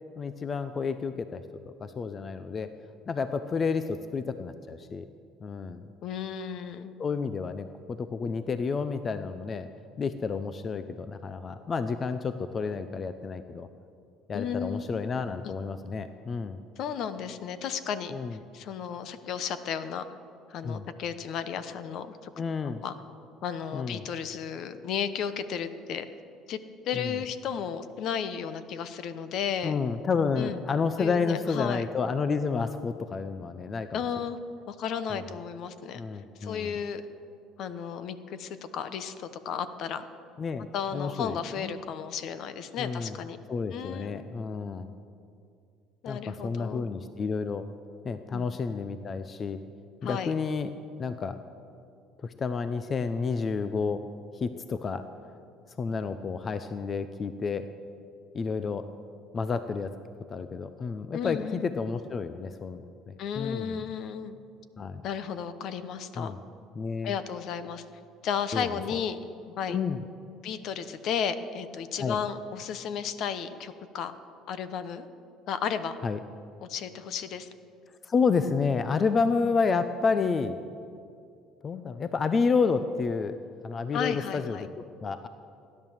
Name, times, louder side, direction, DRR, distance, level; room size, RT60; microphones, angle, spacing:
voice 1, 0.2-1.4 1.8-2.7 3.1-5.0 5.4-5.8 7.0-9.7 10.0-13.7 14.3-16.6 18.1-18.4 20.6-20.8 22.4-22.8 23.7-24.0 26.9-27.2 29.6-34.0 35.1-35.2 35.9-36.7 40.4-41.7 42.8-43.2 43.5-44.9 46.1-47.7 48.0-49.6 50.0-50.7 51.0-51.4 52.2-54.0 54.3-55.1 55.8-57.7 58.3-58.9 59.3-59.9 60.3-63.8 64.8-65.0 66.2-66.4 66.8-67.1 68.5-68.8 69.7-70.0 72.0-72.2 76.0-76.2 78.0-80.6 81.6-83.4 83.6-85.3, left 5 dB, 35° left, 11 dB, 0.6 m, -30 dB
voice 2, 6.0-6.9 14.3-14.9 16.8-18.1 18.5-20.1 20.5-22.3 22.6-22.9 23.4-26.1 26.5-26.6 26.8-29.8 30.4-30.6 31.0-31.8 33.9-34.4 34.7-36.0 36.4-37.0 37.6-40.0 40.7-43.4 43.7-44.3 46.0-46.9 48.3-48.5 50.0-50.3 61.1-61.7 63.2-64.4 65.0-66.3 67.0-67.8 68.2-69.2 69.6-69.8 70.4-74.1 74.5-75.1 75.5-76.0 76.6-77.5 83.9-84.7, left 7 dB, 60° left, 12 dB, 0.9 m, -33 dB
16.0 x 11.0 x 7.3 m, 2.4 s
supercardioid pair, 100°, 0 cm